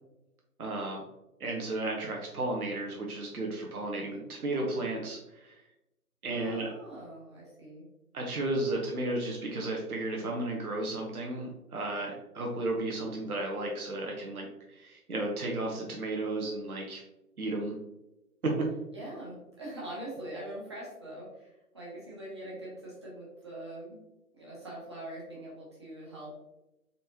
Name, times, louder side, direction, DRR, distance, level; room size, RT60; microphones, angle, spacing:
voice 1, 0.6-1.0 1.4-5.6 6.2-6.7 8.1-14.5 14.8-17.0 17.4-17.7 18.6-18.7, right 2 dB, 70° right, 0 dB, 0.9 m, -33 dB
voice 2, 3.9-4.2 6.3-7.9 18.9-24.0 24.3-26.3, right 1 dB, 20° right, -5 dB, 0.8 m, -43 dB
4.1 x 3.6 x 2.7 m, 0.93 s
figure-of-eight pair, 145°, 46 cm